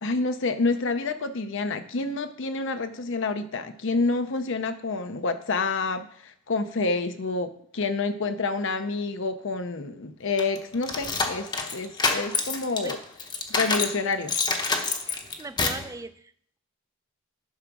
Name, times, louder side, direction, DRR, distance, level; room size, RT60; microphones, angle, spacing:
voice 1, 0.0-13.0 13.5-14.3, left 3 dB, 60° left, 9 dB, 0.7 m, -28 dB
unlock door mono, 10.4-14.0 14.3-15.9, left 3 dB, 20° left, 0.8 m, -27 dB
voice 2, 15.0-16.3, right 3 dB, 15° right, 11 dB, 0.4 m, -40 dB
10.5 x 5.0 x 6.1 m, 0.62 s
head